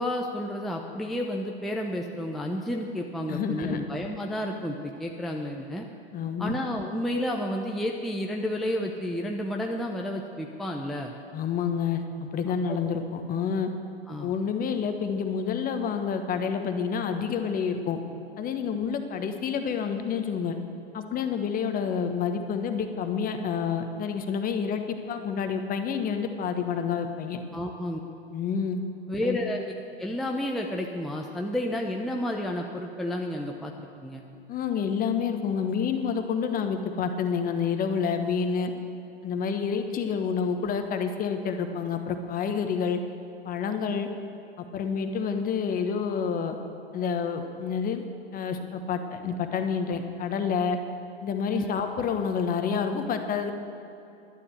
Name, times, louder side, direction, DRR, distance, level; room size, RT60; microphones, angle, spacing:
voice 1, 0.0-5.9 6.4-11.1 12.7-12.8 14.1-14.3 27.5-28.0 29.1-29.7 30.0-34.2 51.5-51.7, left 1 dB, ahead, 0 dB, 0.7 m, -31 dB
voice 2, 3.3-3.8 6.1-6.6 11.3-13.7 14.2-18.0 18.4-20.6 20.9-27.4 28.3-28.8 29.2-29.4 34.5-38.7 39.2-43.0 43.4-44.1 44.6-46.6 46.9-48.0 48.3-50.8 51.2-53.5, left 6 dB, 25° left, 6 dB, 1.2 m, -28 dB
11.5 x 9.8 x 8.1 m, 2.8 s
figure-of-eight pair, 100°, 32 cm